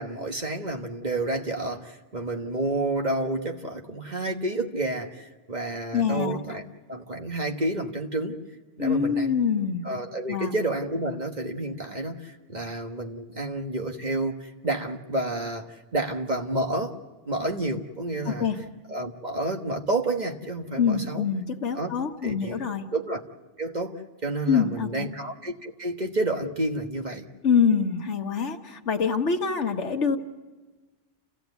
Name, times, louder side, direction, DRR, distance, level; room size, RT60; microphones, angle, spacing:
voice 1, 0.0-6.6 6.9-8.4 8.8-9.3 9.8-16.9 17.2-18.5 18.9-21.2 21.7-21.9 22.2-22.6 22.9-23.2 23.6-23.9 24.2-27.2, right 2 dB, 35° right, 2 dB, 1.5 m, -30 dB
voice 2, 5.9-6.4 8.8-9.8 10.3-10.5 18.3-18.6 20.8-22.9 24.5-25.1 27.4-30.2, left 6 dB, 70° left, 5 dB, 1.6 m, -25 dB
29.0 x 15.5 x 8.2 m, 1.3 s
omnidirectional pair, 1.2 m